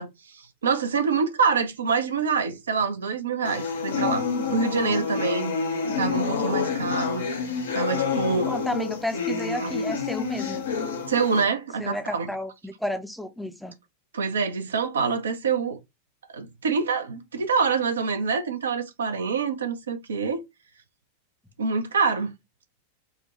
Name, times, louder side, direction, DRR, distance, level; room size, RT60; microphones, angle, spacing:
voice 1, 0.0-5.5 6.0-7.3 7.7-8.5 9.6-9.8 11.1-12.3 14.1-15.8 16.3-20.5 21.6-22.3, right 5 dB, 70° right, 0.6 m, -26 dB
sound 1, 3.4-11.4, left 5 dB, 65° left, 0.7 m, -28 dB
voice 2, 8.5-10.6 11.8-13.8, left 1 dB, ahead, 0.6 m, -32 dB
4.7 x 2.2 x 3.0 m
figure-of-eight pair, 90°, 0 cm